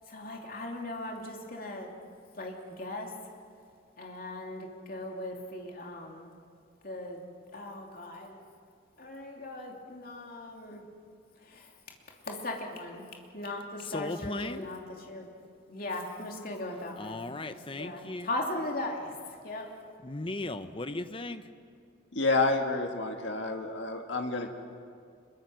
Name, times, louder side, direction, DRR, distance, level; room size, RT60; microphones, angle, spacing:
voice 1, 0.1-1.9 2.4-3.1 4.0-6.3 6.8-7.2 7.5-8.4 9.0-10.8 11.5-11.6 12.3-13.1 13.3-14.8 15.1-15.3 15.7-17.2 17.5-19.1 19.4-19.7, left 2 dB, 50° left, 1 dB, 2.9 m, -38 dB
voice 2, 13.8-14.7 17.0-18.3 20.0-21.4, left 2 dB, 30° left, 10 dB, 0.9 m, -36 dB
voice 3, 22.1-24.5, left 3 dB, 70° left, 3 dB, 1.8 m, -29 dB
26.0 x 22.5 x 6.4 m, 2.3 s
head